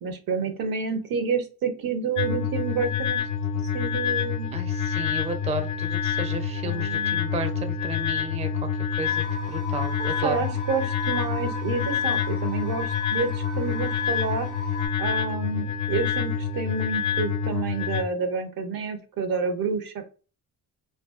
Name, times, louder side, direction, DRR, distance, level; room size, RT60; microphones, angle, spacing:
voice 1, 0.0-3.2 3.7-4.5 6.6-7.3 10.0-14.5 15.0-20.0, right 5 dB, 65° right, 7 dB, 0.6 m, -29 dB
sound 1, 2.2-18.0, left 7 dB, 50° left, 0.4 m, -27 dB
voice 2, 4.5-8.5 9.0-10.4, right 2 dB, 15° right, 7 dB, 0.4 m, -33 dB
sound 2, 9.0-14.9, left 2 dB, 85° right, 1.4 m, -38 dB
2.5 x 2.3 x 2.3 m, 0.36 s
cardioid pair, 65°, 38 cm